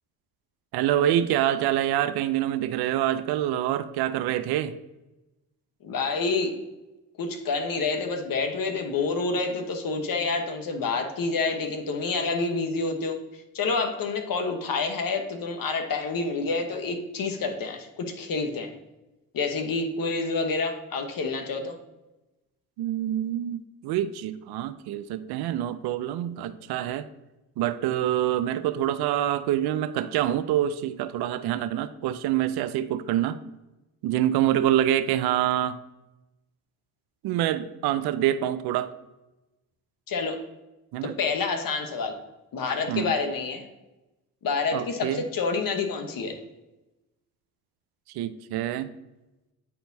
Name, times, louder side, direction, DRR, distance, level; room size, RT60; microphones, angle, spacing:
voice 1, 0.7-4.7 22.8-27.1 27.6-33.4 34.0-35.8 37.2-38.9 40.9-41.2 42.9-43.0 44.7-45.2 48.1-48.9, right 12 dB, 65° right, 12 dB, 0.5 m, -26 dB
voice 2, 5.8-6.5 7.2-18.7 19.3-21.8 40.1-40.4 41.0-42.2 42.5-43.6 44.4-46.4, left 4 dB, 55° left, 6 dB, 1.1 m, -28 dB
8.5 x 4.3 x 2.7 m, 1.0 s
supercardioid pair, 50°, 40 cm